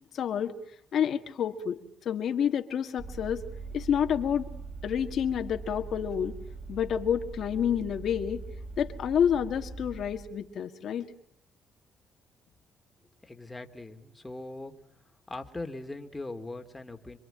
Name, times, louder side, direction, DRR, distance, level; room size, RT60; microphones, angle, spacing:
voice 1, 0.1-0.5 0.9-1.8 2.1-3.4 3.7-4.5 4.8-6.3 6.7-8.4 8.8-11.1, left 8 dB, 65° left, 6 dB, 1.9 m, -28 dB
Vehicle, 3.0-10.3, right 4 dB, 35° right, 6.8 m, -42 dB
voice 2, 13.2-14.7 15.3-17.2, left 2 dB, 15° left, 5 dB, 2.4 m, -40 dB
26.5 x 24.5 x 8.9 m, 0.68 s
cardioid pair, 110°, 0 cm